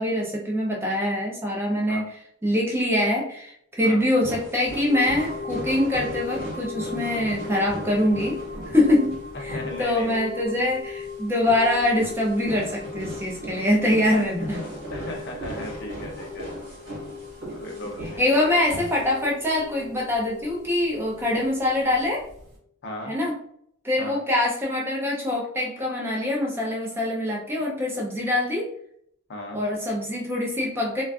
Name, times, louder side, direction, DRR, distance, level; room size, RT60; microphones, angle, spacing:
voice 1, 0.0-2.1 2.4-8.4 8.7-9.1 9.4-14.6 18.2-22.2 23.1-23.3 23.8-28.7 29.5-31.0, left 1 dB, 10° right, 0.4 m, -24 dB
sound 1, 4.2-19.1, right 1 dB, 55° right, 1.2 m, -38 dB
sound 2, 4.9-22.6, left 5 dB, 70° right, 0.9 m, -39 dB
voice 2, 9.3-10.3 14.9-16.5 17.6-18.3 22.8-23.2 24.0-24.2 27.5-27.6 29.3-29.6, left 1 dB, 50° left, 0.6 m, -36 dB
2.4 x 2.3 x 2.3 m
head